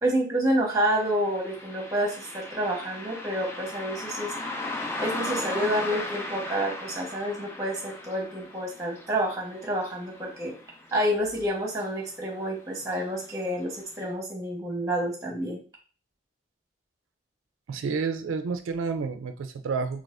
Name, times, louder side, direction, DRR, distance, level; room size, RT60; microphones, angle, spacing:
voice 1, 0.0-4.3 5.0-10.5 10.9-15.6, right 1 dB, 15° right, -1 dB, 1.0 m, -28 dB
Car passing by, 0.7-11.5 11.8-11.9 12.8-13.0 13.5-13.6 14.1-14.2, left 2 dB, 15° left, 0.3 m, -37 dB
voice 2, 17.7-20.0, right 5 dB, 90° right, 9 dB, 0.4 m, -30 dB
4.0 x 3.0 x 2.4 m, 0.38 s
head